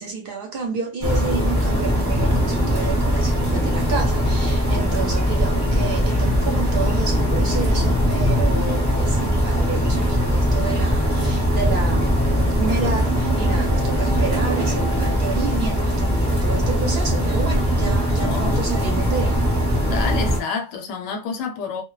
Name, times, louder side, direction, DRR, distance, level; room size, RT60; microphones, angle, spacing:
voice 1, 0.0-19.4, right 5 dB, 60° right, 0.6 m, -30 dB
sound 1, 1.0-20.4, equal, 15° right, 0.8 m, -20 dB
voice 2, 18.2-18.6 19.8-21.8, left 5 dB, 85° left, 1.0 m, -29 dB
2.1 x 2.1 x 3.0 m
omnidirectional pair, 1.3 m